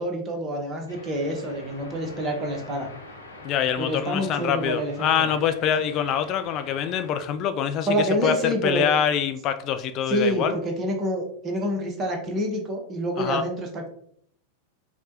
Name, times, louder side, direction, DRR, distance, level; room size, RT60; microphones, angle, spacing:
voice 1, 0.0-2.9 3.8-5.3 7.9-8.9 10.1-13.9, equal, 25° right, 2 dB, 0.9 m, -27 dB
sound 1, 0.9-7.1, left 2 dB, 75° left, 0.8 m, -45 dB
voice 2, 3.4-10.6 13.2-13.4, left 8 dB, 35° left, 9 dB, 0.3 m, -25 dB
4.7 x 2.2 x 2.8 m, 0.65 s
figure-of-eight pair, 90°, 0 cm